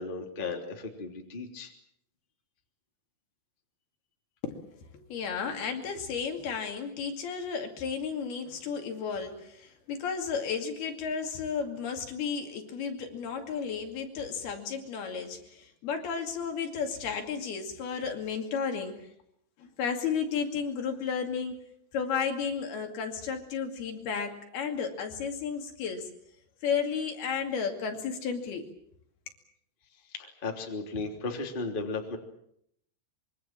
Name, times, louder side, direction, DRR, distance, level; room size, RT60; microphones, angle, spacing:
voice 1, 0.0-1.7 30.1-32.2, left 3 dB, 15° left, 3 dB, 2.5 m, -35 dB
voice 2, 4.9-19.1 19.6-21.6 21.9-26.1 26.6-28.6, left 6 dB, 65° left, 4 dB, 4.2 m, -33 dB
25.5 x 23.5 x 7.5 m, 0.71 s
omnidirectional pair, 5.0 m